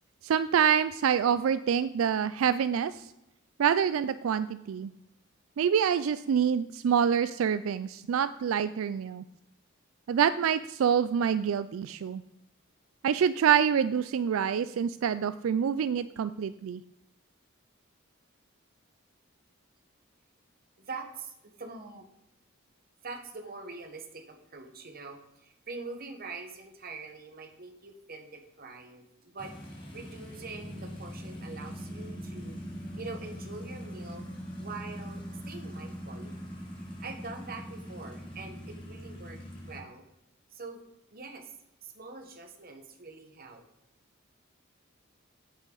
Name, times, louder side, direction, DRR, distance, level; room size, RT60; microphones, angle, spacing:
voice 1, 0.2-3.1 3.6-4.9 5.6-9.2 10.1-12.2 13.0-16.8, right 8 dB, 85° right, 13 dB, 0.3 m, -26 dB
voice 2, 20.8-22.1 23.0-29.5 29.9-32.6 33.0-34.3 34.6-36.3 37.0-40.0 40.5-40.8 41.1-41.5 41.8-43.6, right 3 dB, 45° right, 4 dB, 1.3 m, -44 dB
sound 1, 29.4-39.8, equal, 25° left, 2.7 m, -41 dB
9.0 x 8.3 x 3.9 m, 0.87 s
head